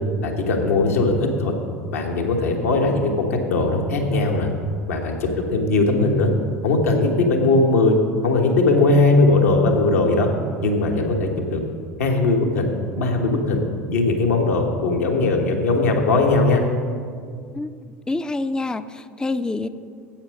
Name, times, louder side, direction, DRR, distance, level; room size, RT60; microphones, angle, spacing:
voice 1, 0.2-1.5 1.9-4.5 4.9-6.3 6.6-8.0 8.2-10.3 10.6-11.6 12.0-12.7 13.0-16.6, left 2 dB, 80° left, 2 dB, 1.2 m, -19 dB
voice 2, 18.1-19.7, left 2 dB, 10° left, 12 dB, 0.4 m, -26 dB
8.9 x 8.0 x 6.3 m, 2.1 s
hypercardioid pair, 70°, 8 cm